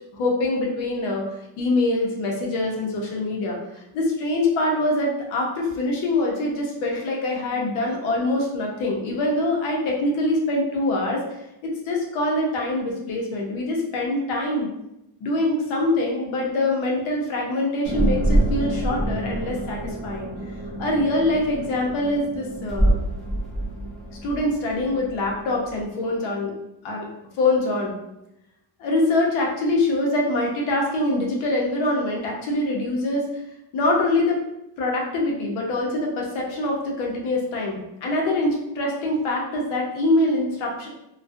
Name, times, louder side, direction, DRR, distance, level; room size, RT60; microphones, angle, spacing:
voice 1, 0.1-1.2 1.6-3.6 3.9-11.2 11.6-14.7 15.2-20.3 20.8-23.0 24.2-26.5 26.8-27.1 27.4-27.9 28.8-33.3 33.7-34.4 34.8-40.9, left 2 dB, 80° left, -1 dB, 0.8 m, -24 dB
sound 1, 17.8-25.8, right 1 dB, ahead, 0.6 m, -26 dB
2.3 x 2.3 x 2.5 m, 0.86 s
cardioid pair, 165°, 48 cm